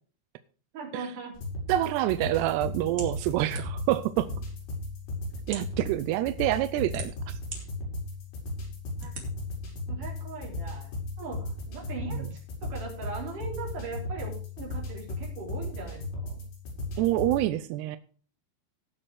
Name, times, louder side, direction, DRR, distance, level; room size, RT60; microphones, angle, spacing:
voice 1, 0.7-1.3 9.0-9.1 9.9-10.9 11.2-16.2, right 4 dB, 45° right, -1 dB, 5.3 m, -40 dB
sound 1, 1.3-17.4, left 2 dB, 70° left, 7.4 m, -36 dB
voice 2, 1.7-4.3 5.5-7.4 12.1-12.2 17.0-18.0, right 14 dB, 85° right, 11 dB, 2.4 m, -27 dB
sound 2, 3.0-4.0 4.7-4.8 5.4-5.8 6.5-7.6 8.1-8.2 9.0-9.3, right 1 dB, 25° right, 2.5 m, -39 dB
18.0 x 6.2 x 4.8 m, 0.41 s
omnidirectional pair, 5.4 m